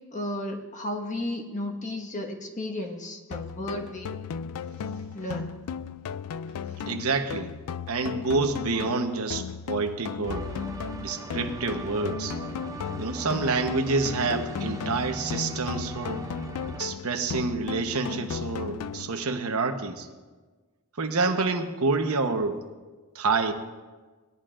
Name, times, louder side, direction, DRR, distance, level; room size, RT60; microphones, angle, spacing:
voice 1, 0.1-4.1 5.1-5.5, left 1 dB, 35° left, 2 dB, 1.5 m, -33 dB
sound 1, 3.3-19.3, left 6 dB, 80° left, 0.3 m, -35 dB
voice 2, 6.9-7.5 7.9-10.5 11.0-12.4 13.0-16.2 16.8-20.1 21.0-22.6 23.1-23.5, right 3 dB, 75° right, 5 dB, 1.0 m, -28 dB
sound 2, 10.2-16.8, right 2 dB, 15° right, 0.5 m, -39 dB
19.5 x 11.0 x 2.5 m, 1.3 s
head